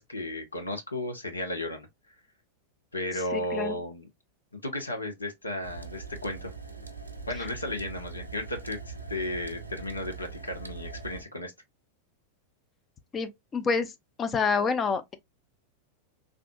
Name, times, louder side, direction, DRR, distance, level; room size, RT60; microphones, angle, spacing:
voice 1, 0.0-1.9 2.9-4.1 4.5-6.5 7.3-11.5, left 1 dB, 80° left, 0.7 m, -34 dB
voice 2, 3.3-3.8 13.1-13.9 14.2-15.1, left 5 dB, 25° left, 0.5 m, -28 dB
sound 1, 5.6-11.2, right 5 dB, 80° right, 0.5 m, -42 dB
3.5 x 2.5 x 2.2 m
figure-of-eight pair, 90°, 0 cm